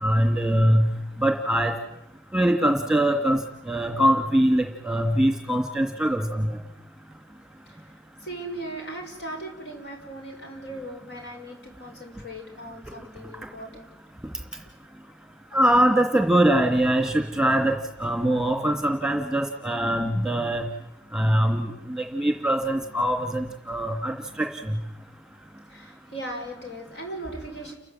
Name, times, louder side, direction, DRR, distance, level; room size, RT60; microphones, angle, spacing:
voice 1, 0.0-0.9 1.2-1.7 2.3-3.4 3.7-6.6 15.5-20.6 21.1-24.8, right 1 dB, 5° right, 4 dB, 2.5 m, -22 dB
voice 2, 8.2-13.9 25.7-27.7, right 1 dB, 60° left, 2 dB, 6.2 m, -38 dB
30.0 x 15.0 x 9.3 m, 0.85 s
head